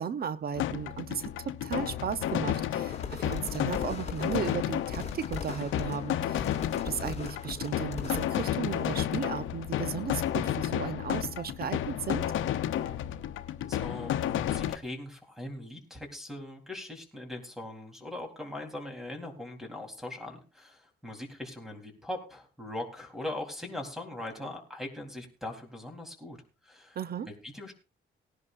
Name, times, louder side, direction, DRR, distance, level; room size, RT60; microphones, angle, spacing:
voice 1, 0.0-12.2 26.9-27.3, right 7 dB, 50° right, 13 dB, 0.9 m, -35 dB
sound 1, 0.6-14.8, left 11 dB, 80° left, 0.8 m, -32 dB
sound 2, 2.9-8.3, left 6 dB, 35° left, 2.5 m, -40 dB
voice 2, 13.6-26.4 26.6-27.0 27.3-27.7, left 1 dB, ahead, 4 dB, 3.9 m, -40 dB
19.0 x 11.0 x 2.6 m, 0.34 s
cardioid pair, 90°, 20 cm